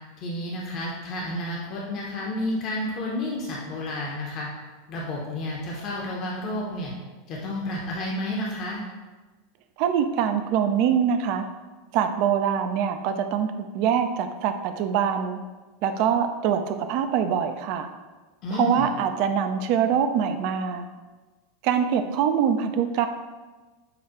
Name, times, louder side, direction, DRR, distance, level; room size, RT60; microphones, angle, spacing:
voice 1, 0.2-4.5 4.9-6.9 7.3-8.8 18.4-18.9, left 1 dB, 45° left, -3 dB, 0.7 m, -30 dB
voice 2, 9.8-11.5 11.9-15.4 15.8-17.9 18.5-20.9 21.6-23.1, right 8 dB, 50° right, 8 dB, 0.3 m, -24 dB
6.5 x 2.4 x 2.9 m, 1.3 s
figure-of-eight pair, 85°, 0 cm